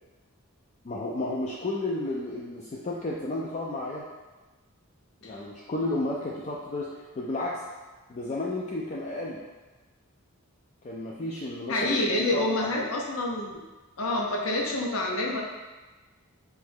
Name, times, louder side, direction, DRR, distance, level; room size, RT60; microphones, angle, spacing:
voice 1, 0.8-4.1 5.2-7.6 8.1-9.4 10.8-12.9, left 2 dB, 30° left, -4 dB, 0.3 m, -32 dB
voice 2, 11.7-13.6 14.0-15.4, left 1 dB, 70° left, -1 dB, 0.7 m, -27 dB
3.6 x 3.2 x 3.5 m, 1.2 s
head